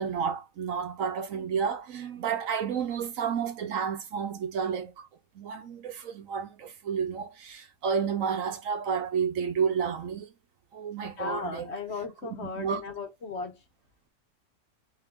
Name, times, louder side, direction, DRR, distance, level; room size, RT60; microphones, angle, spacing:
voice 1, 0.0-5.1 5.3-10.3 10.7-11.7 12.5-12.8, right 6 dB, 70° right, 1.1 m, -31 dB
voice 2, 11.2-13.6, left 4 dB, 55° left, 1.0 m, -36 dB
3.7 x 2.6 x 3.5 m
omnidirectional pair, 1.5 m